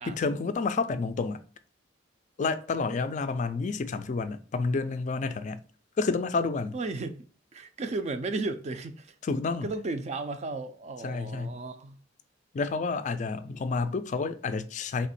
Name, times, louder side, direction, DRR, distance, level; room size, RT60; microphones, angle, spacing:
voice 1, 0.1-1.4 2.4-5.6 6.0-6.8 9.2-9.7 11.0-11.6 12.5-15.1, left 4 dB, 40° left, 0.3 m, -29 dB
voice 2, 6.7-7.2 7.5-9.1 9.6-12.0, right 3 dB, 35° right, 0.4 m, -34 dB
3.3 x 3.0 x 4.1 m
head